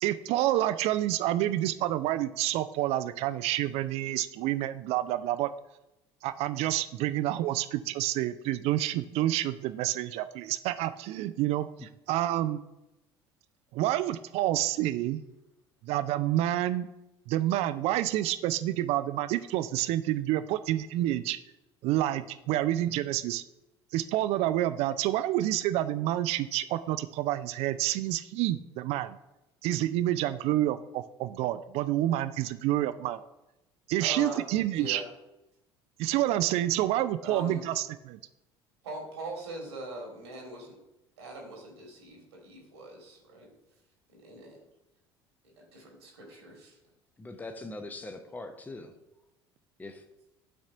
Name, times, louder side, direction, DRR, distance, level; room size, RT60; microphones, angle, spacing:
voice 1, 0.0-5.5 6.2-12.6 13.7-15.2 15.8-16.9 17.3-21.4 21.8-23.4 23.9-29.2 29.6-33.2 33.9-35.0 36.0-38.2, right 14 dB, 50° right, 12 dB, 0.4 m, -28 dB
voice 2, 34.0-34.5 34.7-35.0 37.2-37.6 38.8-40.8 41.2-43.5 44.1-44.6 45.6-46.8, right 1 dB, 75° right, 0 dB, 1.8 m, -41 dB
voice 3, 47.2-48.9 49.8-50.0, left 2 dB, 10° left, 7 dB, 0.7 m, -41 dB
12.5 x 4.2 x 2.5 m, 0.93 s
figure-of-eight pair, 60°, 14 cm